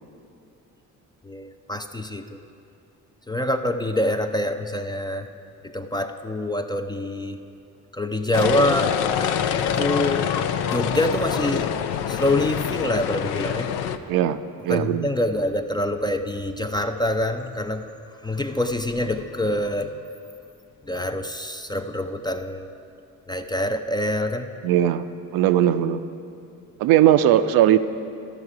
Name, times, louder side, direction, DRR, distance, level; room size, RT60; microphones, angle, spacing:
voice 1, 1.2-2.4 3.3-5.3 5.6-7.4 7.9-9.0 9.6-10.3 10.6-11.7 12.1-13.7 14.7-17.9 18.2-20.0 20.8-22.7 23.3-24.5, left 1 dB, 10° left, 6 dB, 0.4 m, -25 dB
sound 1, 8.3-14.0, left 8 dB, 70° left, 0.6 m, -25 dB
voice 2, 14.1-15.1 24.6-25.0 25.3-26.0 26.8-27.8, right 11 dB, 60° right, 11 dB, 0.5 m, -19 dB
13.0 x 5.6 x 4.8 m, 2.6 s
hypercardioid pair, 50°, 41 cm